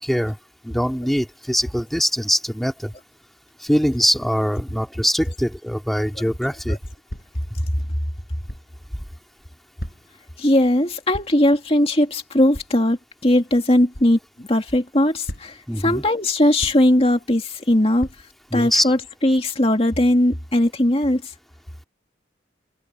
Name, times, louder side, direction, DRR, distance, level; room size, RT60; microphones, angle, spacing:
voice 1, 0.0-0.4 0.6-2.9 3.6-6.8 15.7-16.0 18.5-18.9, equal, ahead, 2.2 m, -22 dB
sound 1, 7.1-7.5 8.5-8.7 9.8-10.2 11.1-11.5 12.5-12.7 13.9-14.1 15.3-15.7 16.6-17.0 18.0-18.2, equal, 55° left, 5.6 m, -35 dB
voice 2, 10.4-18.1 18.5-21.2, left 1 dB, 30° left, 2.3 m, -19 dB
head